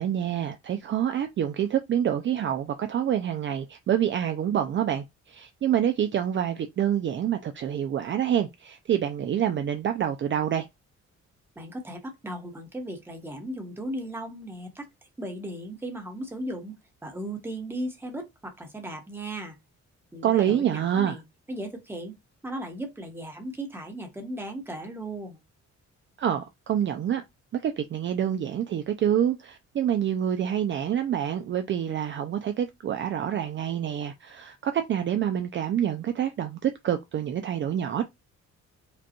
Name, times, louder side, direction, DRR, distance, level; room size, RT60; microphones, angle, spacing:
voice 1, 0.0-10.7 20.2-21.2 26.2-27.2 27.5-38.0, right 10 dB, 40° right, 0.4 m, -27 dB
voice 2, 11.6-14.9 15.2-19.5 20.1-21.2 21.5-22.2 22.4-25.4, right 1 dB, 10° right, 1.0 m, -36 dB
5.1 x 2.3 x 2.9 m
cardioid pair, 150°, 29 cm